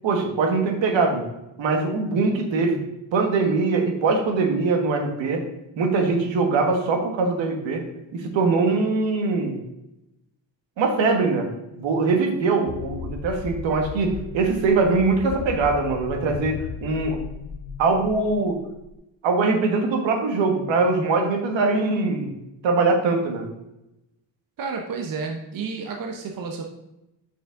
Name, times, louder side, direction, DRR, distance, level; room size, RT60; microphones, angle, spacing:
voice 1, 0.0-1.3 1.6-2.8 3.1-5.4 5.8-7.8 8.1-9.6 10.8-11.5 11.7-17.2 17.8-18.6 19.2-22.3 22.6-23.4, right 3 dB, 80° right, 3 dB, 1.6 m, -22 dB
sound 1, 12.7-18.9, left 6 dB, 50° left, 0.6 m, -36 dB
voice 2, 24.6-26.6, right 4 dB, 50° right, 2 dB, 0.9 m, -31 dB
6.9 x 6.3 x 3.8 m, 0.89 s
cardioid pair, 155°, 44 cm